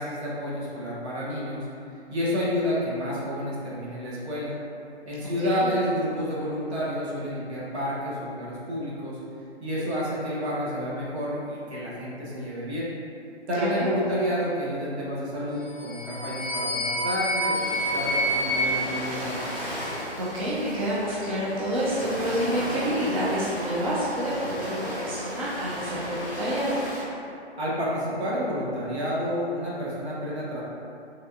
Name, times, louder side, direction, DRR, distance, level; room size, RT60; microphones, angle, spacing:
voice 1, 0.0-1.7 2.1-4.5 5.0-9.2 9.6-12.9 13.5-19.4 27.6-30.6, equal, 75° right, -7 dB, 1.1 m, -30 dB
voice 2, 5.4-5.8 13.4-13.9 20.2-26.8, equal, 35° right, -8 dB, 0.4 m, -28 dB
sound 1, 15.7-20.0, equal, 55° left, 0.6 m, -28 dB
Ocean, 17.5-27.0, equal, 15° right, 1.1 m, -35 dB
3.4 x 2.3 x 2.6 m, 2.6 s
hypercardioid pair, 150°, 33 cm